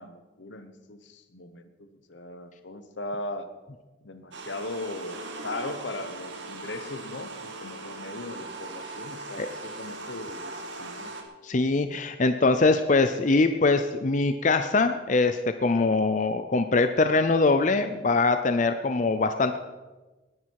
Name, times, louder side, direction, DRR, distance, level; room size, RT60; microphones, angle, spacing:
voice 1, 0.0-3.5 4.0-11.1, left 2 dB, 75° left, 10 dB, 1.2 m, -38 dB
sound 1, 4.3-11.2, right 2 dB, 75° right, 2.0 m, -39 dB
voice 2, 11.4-19.6, left 3 dB, 40° left, 8 dB, 0.6 m, -23 dB
19.5 x 10.0 x 4.7 m, 1.2 s
head